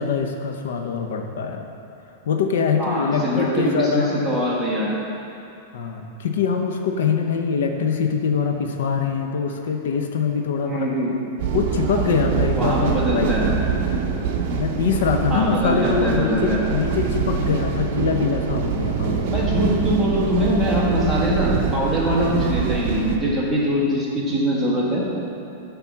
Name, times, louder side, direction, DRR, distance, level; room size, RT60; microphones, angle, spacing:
voice 1, 0.0-1.6 2.3-4.4 5.7-10.9 11.5-13.7 14.5-19.6, left 6 dB, 80° left, 4 dB, 0.8 m, -23 dB
voice 2, 2.8-4.9 10.6-11.1 12.6-13.5 15.3-16.6 19.3-25.0, equal, ahead, -8 dB, 1.5 m, -22 dB
sound 1, 11.4-23.2, right 6 dB, 45° right, 0.8 m, -24 dB
6.9 x 5.2 x 7.2 m, 2.7 s
supercardioid pair, 170°, 0 cm